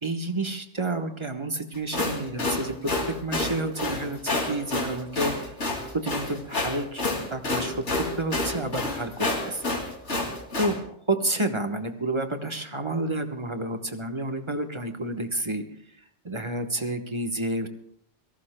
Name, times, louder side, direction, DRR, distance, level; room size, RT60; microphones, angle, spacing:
voice 1, 0.0-5.6 5.9-9.6 10.6-15.6 16.2-17.7, right 2 dB, 25° right, 5 dB, 1.0 m, -30 dB
sound 1, 1.7-10.7, left 2 dB, 75° left, 2.8 m, -28 dB
26.5 x 18.0 x 2.2 m, 0.69 s
omnidirectional pair, 1.2 m